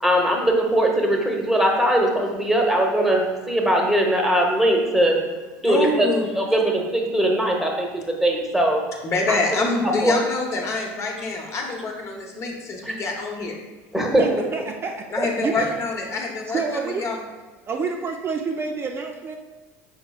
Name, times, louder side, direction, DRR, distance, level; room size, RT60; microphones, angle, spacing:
voice 1, 0.0-5.2 5.6-6.1 6.3-8.8 9.3-9.4 10.0-10.2 12.8-12.9 13.9-14.4, right 1 dB, 5° right, 0 dB, 1.0 m, -20 dB
voice 2, 5.6-6.3 9.0-13.5 15.1-17.2, left 3 dB, 40° left, 0 dB, 0.9 m, -26 dB
voice 3, 14.2-15.1 15.4-15.7 16.5-17.0 17.7-19.4, right 5 dB, 30° right, 2 dB, 0.4 m, -28 dB
5.6 x 4.0 x 2.3 m, 1.3 s
hypercardioid pair, 85°, 8 cm